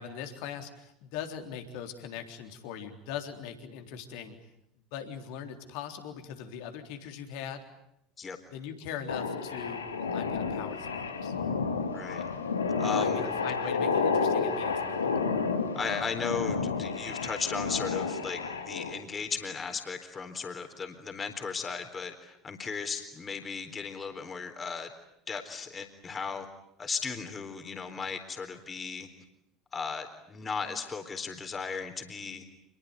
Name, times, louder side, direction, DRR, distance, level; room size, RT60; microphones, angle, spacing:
voice 1, 0.0-4.4 4.9-7.6 8.5-11.3 13.0-15.1, left 8 dB, 60° left, 6 dB, 3.7 m, -41 dB
sound 1, 9.1-19.0, left 5 dB, 80° left, 2.1 m, -30 dB
voice 2, 11.9-12.3 12.8-13.2 15.7-24.9 25.3-26.5 26.8-29.1 29.7-32.4, left 5 dB, 25° left, 6 dB, 4.0 m, -36 dB
27.5 x 22.0 x 9.6 m, 0.78 s
figure-of-eight pair, 70°, 0 cm